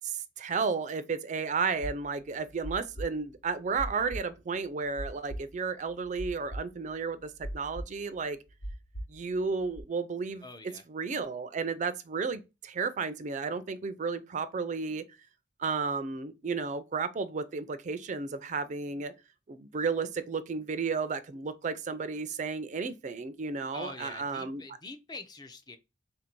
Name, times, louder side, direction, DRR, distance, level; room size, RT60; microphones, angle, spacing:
voice 1, 0.0-8.4 9.1-10.4 10.9-15.0 15.6-19.1 19.5-24.6, right 4 dB, 45° right, 0.4 m, -33 dB
sound 1, 1.8-9.8, right 1 dB, 55° left, 0.8 m, -40 dB
voice 2, 10.4-10.8 23.7-25.8, left 3 dB, 25° left, 0.5 m, -45 dB
3.9 x 2.6 x 4.3 m
head